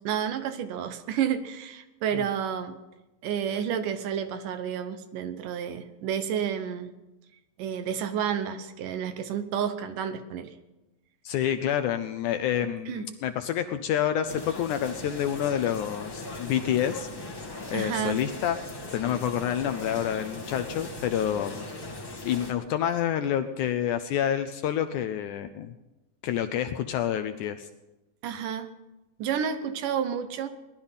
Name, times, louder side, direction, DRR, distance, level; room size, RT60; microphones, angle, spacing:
voice 1, 0.0-2.8 3.2-6.9 7.6-10.5 12.9-13.1 17.7-18.2 28.2-28.7 29.2-30.5, right 8 dB, 75° right, 9 dB, 2.4 m, -30 dB
voice 2, 11.2-17.1 17.7-18.6 18.9-21.7 22.2-25.7 26.2-27.7, left 10 dB, 75° left, 8 dB, 1.9 m, -28 dB
sound 1, 14.3-22.5, left 2 dB, 25° left, 0.5 m, -39 dB
19.0 x 12.0 x 5.6 m, 1.0 s
omnidirectional pair, 4.0 m